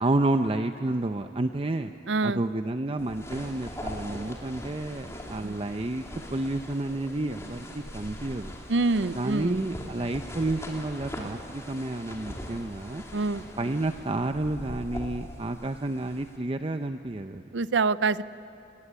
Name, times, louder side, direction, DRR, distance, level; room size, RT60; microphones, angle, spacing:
voice 1, 0.0-1.9 2.2-8.5 9.1-13.0 13.6-17.4, right 2 dB, 30° right, 8 dB, 0.6 m, -30 dB
voice 2, 2.1-2.4 5.4-5.6 8.7-9.6 13.1-13.4 17.5-18.2, right 3 dB, 90° right, 16 dB, 0.6 m, -25 dB
sound 1, 3.0-16.4, left 1 dB, 15° left, 3.0 m, -41 dB
sound 2, 3.2-3.3 4.1-4.2 5.1-5.2 6.0-6.1 6.9-7.0 7.8-7.9 8.8-8.9 9.7-9.8 10.6-10.7, left 1 dB, 85° left, 6.1 m, -52 dB
29.0 x 19.5 x 9.9 m, 2.8 s
head